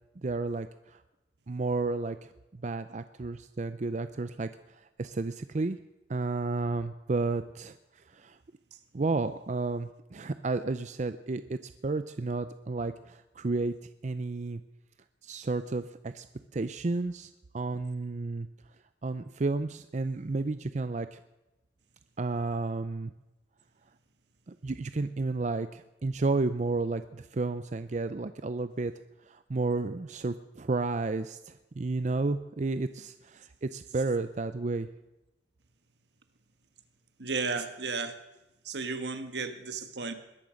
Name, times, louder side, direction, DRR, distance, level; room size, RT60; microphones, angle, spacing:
voice 1, 0.2-1.0 1.5-5.8 6.1-8.4 8.9-13.7 14.0-14.6 15.2-16.3 16.5-18.5 19.0-21.2 22.2-23.1 24.5-28.9 29.3-34.9, right 3 dB, 45° right, 11 dB, 0.5 m, -32 dB
voice 2, 37.2-38.2 38.6-40.1, right 4 dB, 75° right, 9 dB, 1.5 m, -33 dB
20.5 x 11.0 x 6.4 m, 0.98 s
head